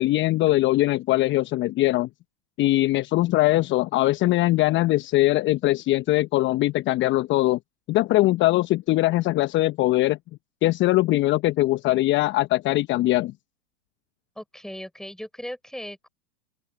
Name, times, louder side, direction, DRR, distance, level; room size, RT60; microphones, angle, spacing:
voice 1, 0.0-2.1 2.6-7.6 7.9-10.2 10.6-13.3, left 17 dB, 30° left, 1.0 m, -21 dB
voice 2, 14.3-16.1, equal, ahead, 6.6 m, -37 dB
open air
hypercardioid pair, 100°, 37 cm